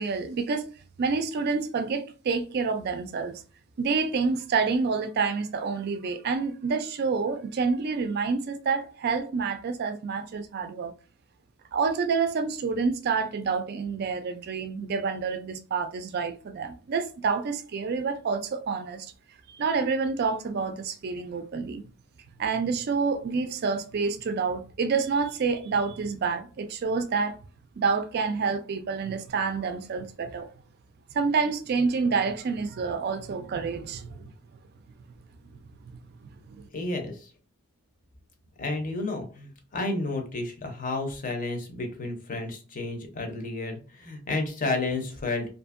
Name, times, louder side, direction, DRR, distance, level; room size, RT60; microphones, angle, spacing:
voice 1, 0.0-3.3 3.8-10.9 11.7-19.1 19.5-21.8 22.4-27.4 27.8-30.5 31.1-34.3 36.5-36.6, right 5 dB, 50° right, 0.4 m, -28 dB
voice 2, 36.7-37.3 38.6-45.4, left 2 dB, 40° left, 0.6 m, -31 dB
2.6 x 2.5 x 2.4 m
head